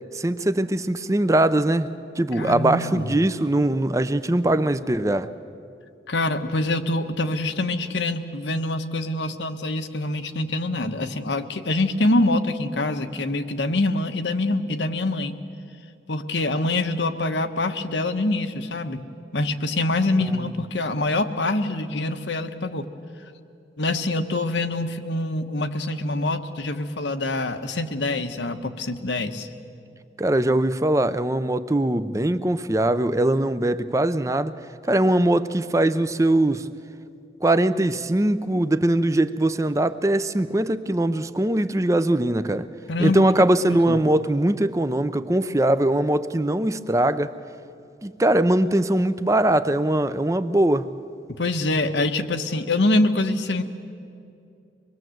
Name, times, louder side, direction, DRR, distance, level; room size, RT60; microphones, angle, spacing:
voice 1, 0.1-1.9 2.2-5.3 30.2-34.5 34.9-36.7 37.4-42.7 43.0-47.3 48.0-50.9, right 1 dB, 15° right, 0.6 m, -21 dB
voice 2, 2.3-3.1 6.1-15.4 16.1-19.0 19.3-22.9 23.8-29.5 42.9-43.3 43.6-44.1 51.3-53.6, left 2 dB, 85° left, 1.2 m, -25 dB
25.0 x 21.0 x 7.8 m
head